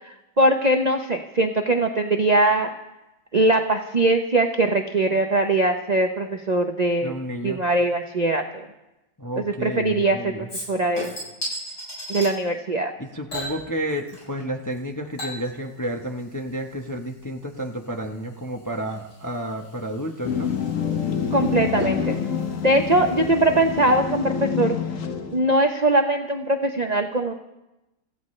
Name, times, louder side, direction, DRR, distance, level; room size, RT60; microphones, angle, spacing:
voice 1, 0.1-2.7 3.3-7.1 7.4-8.7 9.4-11.1 12.1-12.9 21.3-22.2 22.6-24.8 25.3-27.3, right 2 dB, 40° right, 4 dB, 0.6 m, -21 dB
voice 2, 7.0-7.6 9.2-10.5 13.0-20.5, right 1 dB, 15° left, 2 dB, 0.7 m, -31 dB
Chink clink / Liquid, 10.5-12.3 13.3-14.4 14.7-23.7 24.1-24.2, equal, 70° left, 8.5 m, -38 dB
sound 1, 20.2-25.5, left 7 dB, 55° left, 1.2 m, -27 dB
25.5 x 15.0 x 3.2 m, 0.96 s
omnidirectional pair, 1.9 m